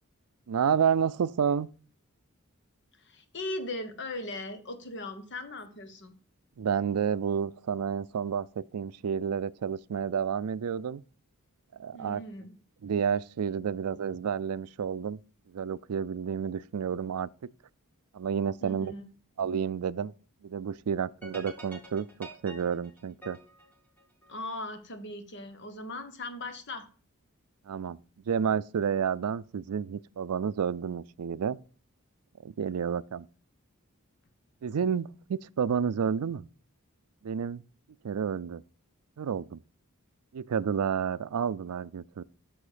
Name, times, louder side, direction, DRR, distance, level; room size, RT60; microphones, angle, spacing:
voice 1, 0.5-1.7 6.6-11.0 11.7-12.2 12.8-15.2 15.5-17.3 18.1-18.9 19.4-20.1 20.4-23.4 27.7-28.0 28.3-31.6 32.4-33.3 34.6-36.5 37.2-37.6 38.0-38.6 39.2-39.6 40.3-42.2, right 7 dB, 85° right, 0.4 m, -30 dB
voice 2, 3.0-6.1 11.9-12.5 18.6-19.0 24.3-26.8, left 2 dB, 55° left, 1.3 m, -39 dB
sound 1, 21.2-24.6, equal, 10° left, 2.8 m, -47 dB
8.4 x 6.3 x 5.0 m
head